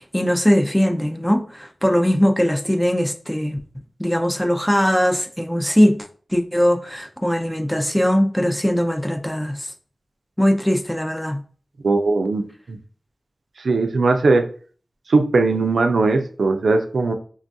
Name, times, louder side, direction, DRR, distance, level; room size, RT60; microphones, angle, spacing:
voice 1, 0.0-3.6 4.0-9.7 10.4-11.4, equal, 5° left, 5 dB, 0.4 m, -20 dB
voice 2, 11.8-12.8 13.6-14.5 15.1-17.1, right 3 dB, 90° right, 6 dB, 0.3 m, -19 dB
3.3 x 2.2 x 2.6 m, 0.43 s
cardioid pair, 45°, 0 cm